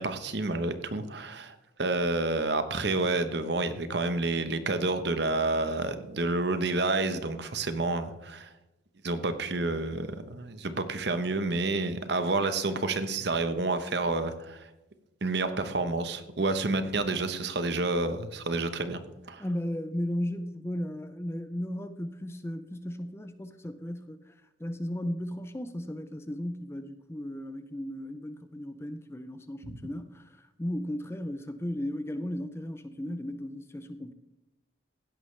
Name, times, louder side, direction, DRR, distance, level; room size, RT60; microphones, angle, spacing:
voice 1, 0.0-8.5 9.0-14.7 15.2-19.0 19.3-19.4 29.6-29.8, right 2 dB, 55° right, 1.0 m, -29 dB
voice 2, 19.4-34.1, left 1 dB, 15° left, 0.5 m, -35 dB
16.0 x 11.0 x 3.3 m
head